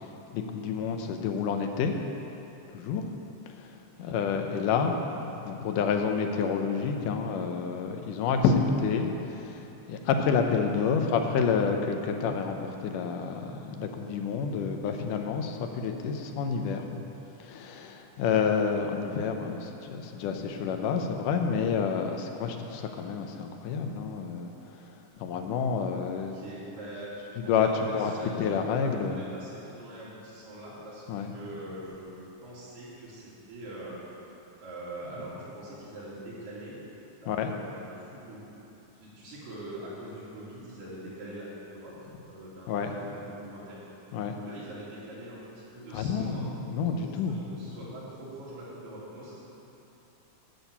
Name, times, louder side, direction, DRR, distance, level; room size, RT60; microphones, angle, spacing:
voice 1, 0.3-1.9 2.7-3.0 3.6-3.7 4.0-16.8 17.4-24.5 25.2-26.4 27.4-28.1 28.4-29.2 31.1-31.3 37.3-37.5 42.7-42.9 44.1-44.4 45.9-47.4, left 6 dB, 75° left, 4 dB, 2.2 m, -29 dB
voice 2, 26.1-27.1 27.4-34.0 34.6-36.8 37.2-38.5 39.0-42.0 42.2-43.8 44.4-46.5 46.9-49.4, right 1 dB, 75° right, -9 dB, 4.8 m, -43 dB
12.0 x 6.3 x 8.3 m, 3.0 s
omnidirectional pair, 4.0 m